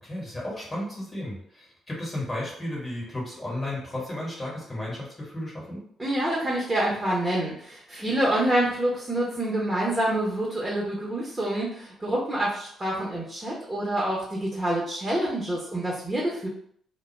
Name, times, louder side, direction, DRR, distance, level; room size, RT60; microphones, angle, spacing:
voice 1, 0.0-5.8, left 1 dB, 15° left, -4 dB, 1.4 m, -34 dB
voice 2, 6.0-16.5, right 1 dB, 20° right, -4 dB, 0.8 m, -27 dB
2.2 x 2.1 x 3.2 m, 0.64 s
figure-of-eight pair, 40°, 0 cm